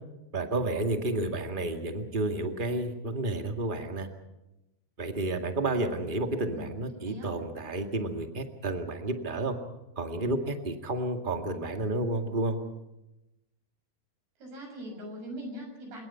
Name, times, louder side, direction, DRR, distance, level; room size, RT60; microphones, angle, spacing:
voice 1, 0.3-4.1 5.0-9.5 9.9-12.6, right 2 dB, 35° right, 5 dB, 0.8 m, -31 dB
voice 2, 6.5-7.3 14.4-16.1, equal, 70° right, 2 dB, 8.3 m, -41 dB
29.5 x 18.5 x 5.7 m, 0.93 s
omnidirectional pair, 4.7 m